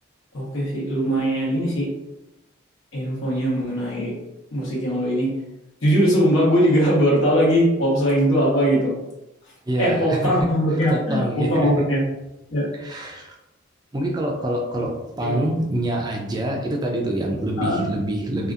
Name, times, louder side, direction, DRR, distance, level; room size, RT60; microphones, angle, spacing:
voice 1, 0.3-1.9 2.9-4.1 4.5-5.3 5.8-8.9 9.8-12.0 12.5-12.7 15.2-15.5 17.6-17.8, equal, 85° left, -4 dB, 1.0 m, -20 dB
voice 2, 9.7-10.3 10.9-11.7 12.8-13.3 13.9-18.5, right 1 dB, 20° right, 0 dB, 0.3 m, -26 dB
2.7 x 2.4 x 2.4 m, 0.95 s
head